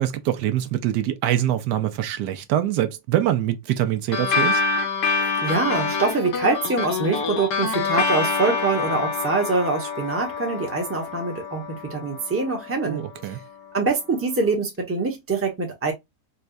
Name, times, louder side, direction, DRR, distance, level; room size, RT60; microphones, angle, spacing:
voice 1, 0.0-4.6 12.8-13.4, right 12 dB, 85° right, 1.2 m, -24 dB
sound 1, 4.1-12.9, left 5 dB, 85° left, 1.6 m, -26 dB
voice 2, 5.2-13.3 13.7-15.9, right 3 dB, 10° right, 0.8 m, -24 dB
4.2 x 2.3 x 2.5 m
omnidirectional pair, 1.8 m